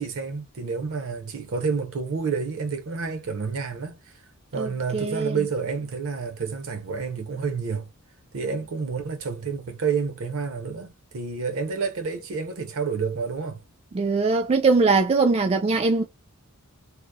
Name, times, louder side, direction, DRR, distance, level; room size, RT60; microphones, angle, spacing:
voice 1, 0.0-4.2 4.5-7.9 8.3-13.6, right 5 dB, 65° right, 0.6 m, -29 dB
voice 2, 4.6-5.4 13.9-16.0, right 4 dB, 25° right, 0.3 m, -21 dB
2.8 x 2.0 x 2.2 m
head